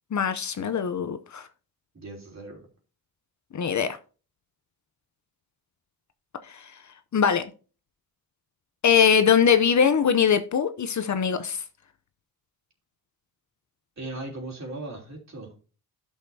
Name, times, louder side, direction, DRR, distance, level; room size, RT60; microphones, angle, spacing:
voice 1, 0.1-1.5 3.5-4.0 6.4-6.7 7.1-7.5 8.8-11.6, left 7 dB, 50° left, 0.7 m, -22 dB
voice 2, 1.9-2.6 14.0-15.5, right 2 dB, 45° right, 3.2 m, -38 dB
11.5 x 6.4 x 2.7 m
cardioid pair, 95°, 38 cm